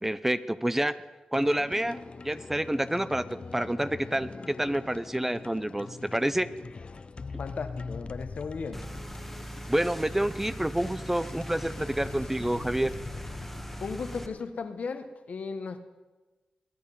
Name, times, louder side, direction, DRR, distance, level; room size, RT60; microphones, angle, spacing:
voice 1, 0.0-0.9 1.3-2.0 2.2-3.3 3.5-6.5 9.7-12.9, right 1 dB, 10° right, 13 dB, 0.6 m, -28 dB
sound 1, 1.3-14.5, left 4 dB, 45° left, 0.6 m, -43 dB
voice 2, 7.4-8.8 13.8-15.8, left 5 dB, 65° left, 9 dB, 1.1 m, -36 dB
sound 2, 8.7-14.3, equal, 5° left, 1.5 m, -40 dB
22.0 x 8.9 x 5.5 m, 1.2 s
cardioid pair, 60°, 3 cm